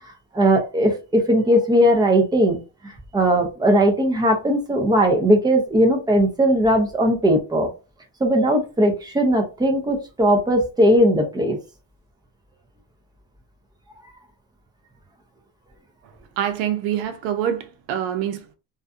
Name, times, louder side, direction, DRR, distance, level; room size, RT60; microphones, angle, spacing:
voice 1, 0.3-7.7 8.2-11.6, equal, 10° right, 0.5 m, -18 dB
voice 2, 16.4-18.5, right 10 dB, 90° right, 0.7 m, -25 dB
2.5 x 2.3 x 2.4 m
cardioid pair, 135°, 45 cm